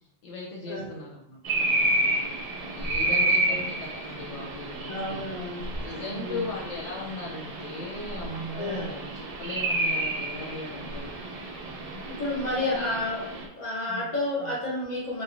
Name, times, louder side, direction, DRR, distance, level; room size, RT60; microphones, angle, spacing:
voice 1, 0.2-3.6 3.9-5.3 5.8-9.1 9.4-11.1 12.6-12.9 13.9-14.1 14.4-14.5, left 2 dB, 80° left, -2 dB, 0.9 m, -38 dB
sound 1, 1.4-13.5, right 1 dB, 65° right, 0.3 m, -30 dB
voice 2, 3.0-3.6 4.8-5.7 5.9-6.5 8.5-8.9 12.0-13.2 13.5-15.2, left 1 dB, 40° left, -5 dB, 1.1 m, -31 dB
3.1 x 2.1 x 2.5 m, 0.81 s
omnidirectional pair, 1.2 m